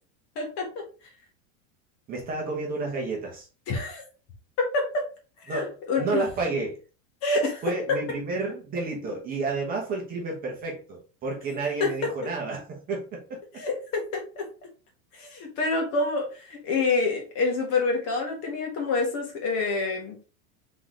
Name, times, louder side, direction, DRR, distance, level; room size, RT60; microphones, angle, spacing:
voice 1, 0.3-0.7 3.7-4.0 4.6-5.0 5.4-6.1 7.2-7.6 7.9-8.0 11.8-11.9 13.6-14.5 15.1-20.2, left 3 dB, 35° left, 1 dB, 1.3 m, -27 dB
voice 2, 2.1-3.5 5.5-5.7 6.0-6.8 7.6-13.4, right 3 dB, 20° right, -1 dB, 1.0 m, -30 dB
3.9 x 3.9 x 3.0 m, 0.35 s
supercardioid pair, 165°, 40 cm